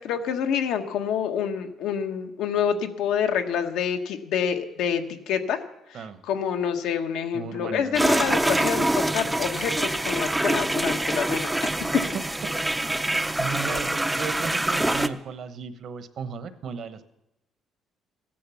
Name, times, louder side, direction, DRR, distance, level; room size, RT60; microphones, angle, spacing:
voice 1, 0.0-5.6 5.9-11.5, left 8 dB, 80° left, 6 dB, 1.3 m, -27 dB
voice 2, 7.3-8.3 13.1-17.0, right 6 dB, 55° right, 11 dB, 1.0 m, -36 dB
sound 1, 7.9-15.1, right 1 dB, 5° right, 0.5 m, -25 dB
15.0 x 10.0 x 7.0 m, 0.91 s
cardioid pair, 135°, 0 cm